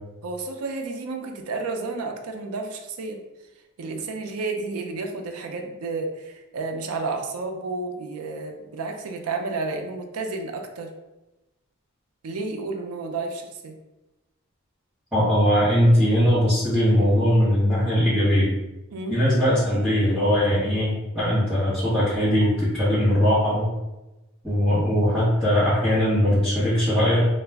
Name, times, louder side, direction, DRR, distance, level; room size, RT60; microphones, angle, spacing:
voice 1, 0.2-3.2 3.8-10.9 12.2-13.7 18.9-19.2, right 3 dB, 85° right, 4 dB, 0.4 m, -31 dB
voice 2, 15.1-18.5 19.1-23.7 24.4-27.3, equal, 5° right, -14 dB, 0.9 m, -20 dB
2.3 x 2.0 x 3.3 m, 1.0 s
head